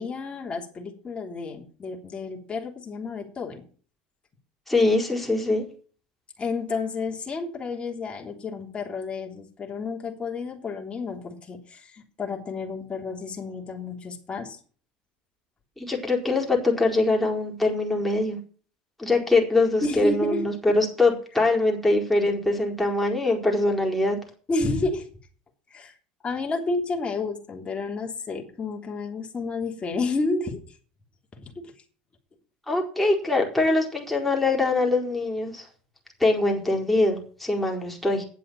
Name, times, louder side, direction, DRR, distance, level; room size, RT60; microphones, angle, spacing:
voice 1, 0.0-3.6 6.4-14.6 19.8-20.5 24.5-25.1 25.7-26.0 26.2-30.6 31.4-31.7, left 3 dB, 25° left, 0 dB, 3.3 m, -31 dB
voice 2, 4.7-5.6 15.8-18.4 19.0-24.2 32.7-35.7 36.2-38.2, left 2 dB, 5° left, -2 dB, 4.4 m, -23 dB
9.8 x 7.5 x 7.5 m, 0.41 s
hypercardioid pair, 90°, 4 cm